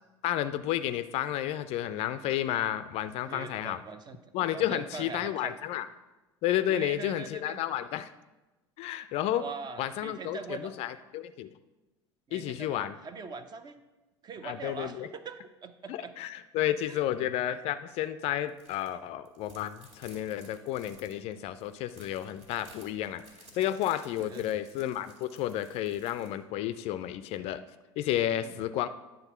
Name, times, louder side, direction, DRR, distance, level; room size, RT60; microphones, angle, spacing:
voice 1, 0.2-3.8 4.3-5.9 6.4-8.1 8.8-9.4 9.8-11.5 12.3-13.0 14.4-15.1 15.9-23.2 23.5-27.6 28.0-28.9, left 12 dB, 45° left, 12 dB, 0.4 m, -31 dB
voice 2, 3.3-4.2 4.5-5.6 6.7-7.6 9.4-10.7 12.3-13.8 14.2-16.1 16.9-17.0 24.2-24.5 28.4-28.6, right 4 dB, 30° right, 11 dB, 0.6 m, -42 dB
sound 1, 18.5-18.9 19.2-26.3, right 1 dB, 45° right, 2.0 m, -56 dB
9.8 x 3.7 x 5.6 m, 1.1 s
figure-of-eight pair, 75°, 15 cm